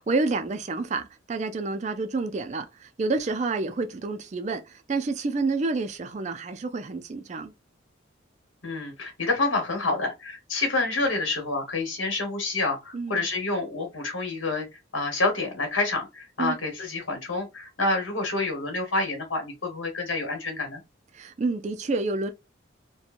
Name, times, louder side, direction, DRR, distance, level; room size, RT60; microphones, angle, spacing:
voice 1, 0.0-7.5 12.9-13.2 16.4-16.6 21.1-22.3, right 3 dB, 35° right, 0.4 m, -29 dB
voice 2, 8.6-20.8, left 3 dB, 80° left, 1.3 m, -28 dB
2.8 x 2.2 x 2.5 m
head